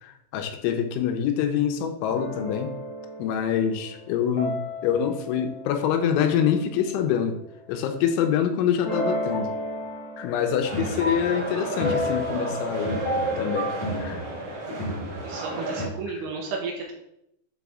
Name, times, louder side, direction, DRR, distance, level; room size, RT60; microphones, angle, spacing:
voice 1, 0.0-2.8 3.2-7.4 7.7-9.5 10.2-13.0 13.4-13.7 14.0-14.2, left 8 dB, 90° left, 6 dB, 3.1 m, -25 dB
sound 1, 2.0-6.6 8.8-13.9, left 1 dB, 45° left, 1.2 m, -33 dB
sound 2, 10.6-15.9, right 1 dB, 40° right, 3.0 m, -31 dB
voice 2, 15.2-16.9, right 4 dB, 75° right, 0 dB, 2.6 m, -33 dB
8.2 x 4.1 x 3.6 m, 0.80 s
omnidirectional pair, 5.3 m